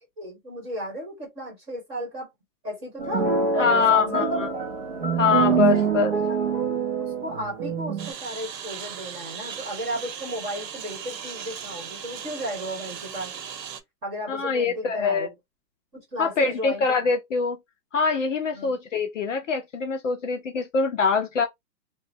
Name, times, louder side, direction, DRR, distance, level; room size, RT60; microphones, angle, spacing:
voice 1, 0.2-2.3 2.6-3.3 3.6-4.5 5.5-5.9 6.3-13.3 14.0-15.3 15.9-17.1 18.5-18.8, equal, 20° right, 1.2 m, -34 dB
sound 1, 3.0-8.1, right 6 dB, 40° right, 0.5 m, -25 dB
voice 2, 3.6-4.5 5.2-6.1 14.3-15.3 16.2-17.6 17.9-21.5, left 5 dB, 50° left, 0.5 m, -23 dB
Engine, 8.0-13.8, right 8 dB, 85° right, 0.8 m, -38 dB
3.0 x 2.1 x 2.6 m
hypercardioid pair, 175°, 49 cm